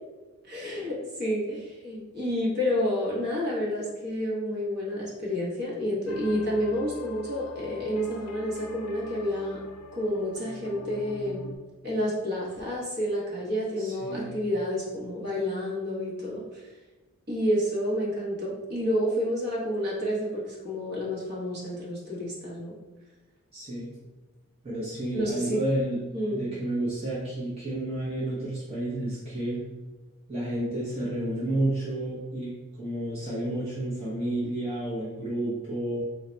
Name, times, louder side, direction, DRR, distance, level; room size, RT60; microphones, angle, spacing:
voice 1, 0.4-9.6 9.9-11.4 11.8-16.7 17.3-22.7 25.1-25.6 26.1-26.4, equal, 45° right, -6 dB, 1.2 m, -29 dB
sound 1, 6.1-11.6, left 3 dB, 90° left, 0.4 m, -44 dB
voice 2, 13.8-14.4 23.5-23.9 24.6-26.0 26.3-29.6 30.3-36.0, right 1 dB, 30° right, -9 dB, 0.9 m, -31 dB
3.9 x 2.2 x 4.0 m, 1.2 s
head